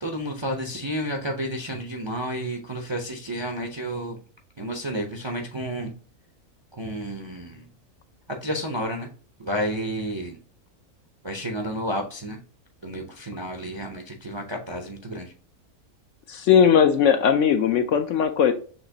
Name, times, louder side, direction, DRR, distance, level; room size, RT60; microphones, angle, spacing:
voice 1, 0.0-4.2 4.6-5.9 6.7-7.7 8.3-9.1 9.4-10.4 11.2-12.4 12.8-15.3, equal, 35° right, 2 dB, 0.5 m, -31 dB
voice 2, 16.3-18.5, left 7 dB, 70° left, 8 dB, 0.8 m, -18 dB
6.5 x 2.9 x 2.7 m, 0.41 s
omnidirectional pair, 1.5 m